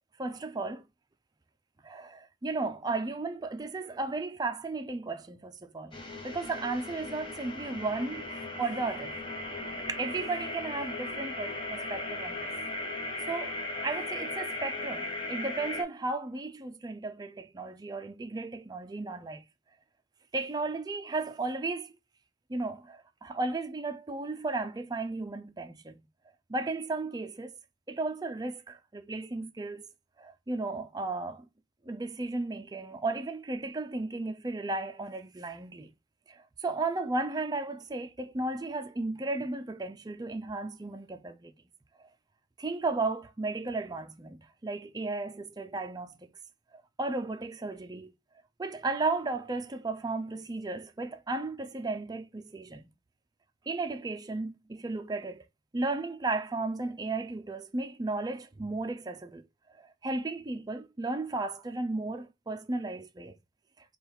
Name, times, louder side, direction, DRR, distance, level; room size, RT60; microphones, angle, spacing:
voice 1, 0.2-0.8 1.8-5.9 6.2-9.2 9.9-12.5 13.3-13.6 13.8-19.4 20.3-21.9 22.5-26.0 26.5-27.6 27.9-29.9 30.2-31.5 31.9-35.9 36.3-41.5 42.6-46.3 47.0-48.1 48.6-52.9 53.7-55.4 55.7-59.4 59.8-63.4, right 3 dB, 20° right, 0.4 m, -34 dB
sound 1, 5.9-15.8, left 2 dB, 25° left, 0.6 m, -37 dB
3.5 x 2.3 x 4.3 m
head